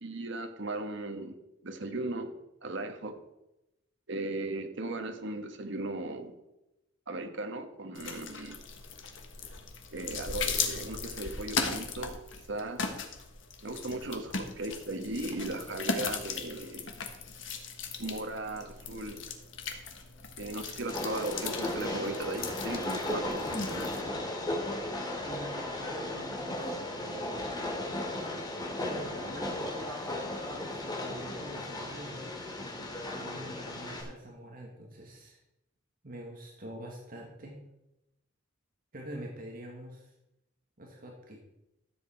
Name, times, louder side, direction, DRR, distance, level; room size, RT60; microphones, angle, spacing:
voice 1, 0.0-1.3 1.6-2.3 2.6-3.2 4.1-6.3 7.1-8.6 9.9-12.2 12.5-12.8 13.6-16.9 18.0-19.2 20.4-23.9, right 2 dB, 65° right, 6 dB, 1.4 m, -37 dB
sound 1, 7.9-24.0, left 5 dB, 65° left, 1.4 m, -38 dB
Train, 20.9-34.0, left 1 dB, 20° left, 2.3 m, -36 dB
voice 2, 25.2-27.5 28.8-32.8 33.1-35.4 36.0-37.6 38.9-40.1 40.8-41.4, right 1 dB, 45° right, 0 dB, 1.8 m, -46 dB
13.5 x 7.7 x 4.5 m, 0.91 s
head